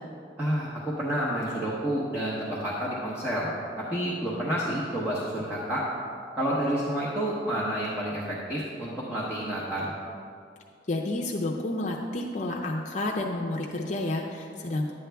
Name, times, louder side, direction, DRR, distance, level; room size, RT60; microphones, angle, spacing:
voice 1, 0.4-5.8 6.4-9.9, equal, 10° right, -8 dB, 1.0 m, -29 dB
voice 2, 10.9-14.9, left 2 dB, 40° left, 0 dB, 0.6 m, -30 dB
11.0 x 8.7 x 3.4 m, 2.4 s
head